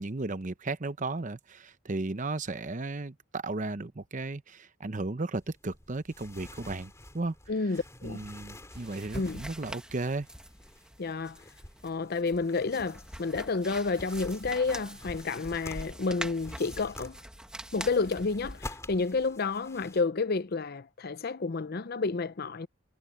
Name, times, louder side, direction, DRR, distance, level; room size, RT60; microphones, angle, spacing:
voice 1, 0.0-7.3 8.0-10.3, right 3 dB, 40° right, 0.8 m, -35 dB
sound 1, 5.4-20.0, left 1 dB, 15° left, 3.0 m, -48 dB
voice 2, 7.5-8.3 9.1-9.4 11.0-11.4 11.8-17.2 17.7-22.7, left 4 dB, 50° left, 0.6 m, -30 dB
sound 2, 8.7-18.6, right 1 dB, 5° right, 1.4 m, -45 dB
head